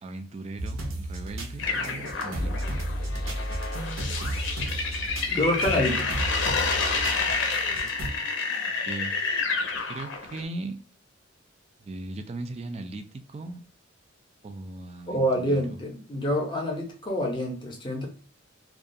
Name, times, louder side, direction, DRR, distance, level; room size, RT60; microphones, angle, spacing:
voice 1, 0.0-2.5 7.6-8.3 8.6-9.1 9.9-10.8 11.8-13.6 14.4-15.8, right 2 dB, 30° right, 7 dB, 0.3 m, -38 dB
sound 1, 0.6-8.1, right 1 dB, 80° right, 0.6 m, -33 dB
sound 2, 1.6-10.4, left 4 dB, 65° left, 0.6 m, -29 dB
voice 2, 5.3-6.1 15.1-18.1, equal, 25° left, 1 dB, 0.6 m, -27 dB
2.3 x 2.2 x 2.6 m, 0.43 s
head